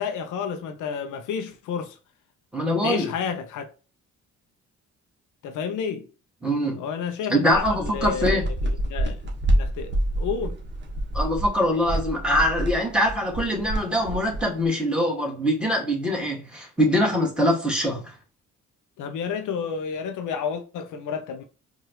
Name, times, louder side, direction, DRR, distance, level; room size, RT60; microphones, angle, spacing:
voice 1, 0.0-2.0 2.8-3.7 5.4-6.1 6.8-9.2 9.5-10.6 19.0-21.4, left 6 dB, 80° left, 0.7 m, -30 dB
voice 2, 2.5-3.1 6.4-6.8 7.3-8.4 11.1-18.1, equal, 5° right, 1.9 m, -23 dB
sound 1, 7.5-14.6, right 1 dB, 35° right, 1.4 m, -27 dB
4.8 x 2.6 x 3.0 m
cardioid pair, 90°, 30 cm